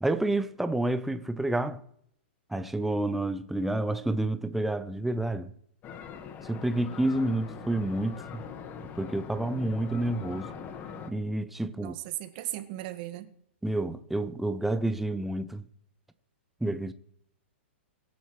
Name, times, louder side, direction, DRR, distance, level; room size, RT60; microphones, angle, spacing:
voice 1, 0.0-1.8 2.5-5.5 6.4-8.4 8.9-10.5 11.1-11.9 13.6-15.6 16.6-16.9, right 1 dB, 5° right, 0.7 m, -29 dB
sound 1, 5.8-11.1, left 6 dB, 30° left, 1.6 m, -42 dB
voice 2, 11.8-13.3, right 16 dB, 45° right, 1.7 m, -37 dB
24.5 x 10.0 x 3.2 m
hypercardioid pair, 125°, 6 cm